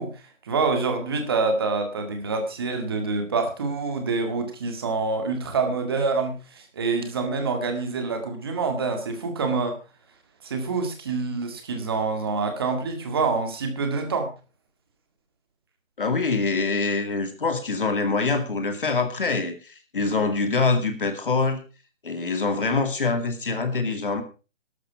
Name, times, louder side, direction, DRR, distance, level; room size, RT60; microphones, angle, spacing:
voice 1, 0.0-9.8 10.4-14.3, right 4 dB, 20° right, 5 dB, 1.9 m, -26 dB
voice 2, 16.0-21.6 22.0-24.2, left 4 dB, 45° left, 8 dB, 2.4 m, -25 dB
13.5 x 12.0 x 4.7 m, 0.33 s
figure-of-eight pair, 170°, 39 cm